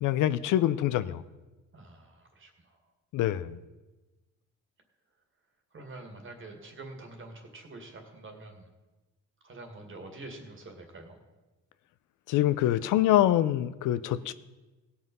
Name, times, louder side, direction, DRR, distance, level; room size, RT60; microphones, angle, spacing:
voice 1, 0.0-1.2 3.1-3.6 12.3-14.3, left 12 dB, 85° left, 14 dB, 0.6 m, -25 dB
voice 2, 1.7-2.8 5.7-8.7 9.4-11.2, right 2 dB, 40° right, 4 dB, 2.2 m, -46 dB
16.5 x 5.7 x 5.4 m, 1.1 s
cardioid pair, 90°, 30 cm